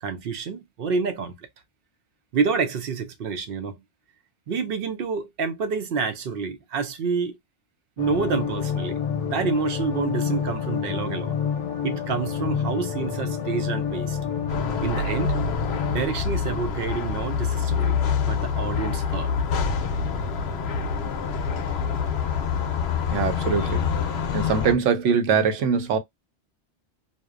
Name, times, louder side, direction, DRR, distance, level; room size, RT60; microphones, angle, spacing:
voice 1, 0.0-1.4 2.3-3.8 4.5-7.4 8.0-9.0 9.3-11.3 11.8-14.2 14.8-15.3 15.9-18.0 18.2-19.3, right 5 dB, 60° right, 0.7 m, -28 dB
sound 1, 8.0-16.0, left 7 dB, 90° left, 1.0 m, -28 dB
sound 2, 14.5-24.7, left 6 dB, 65° left, 0.8 m, -26 dB
voice 2, 23.1-23.9 24.3-26.0, right 6 dB, 80° right, 1.0 m, -22 dB
2.6 x 2.1 x 2.3 m
omnidirectional pair, 1.2 m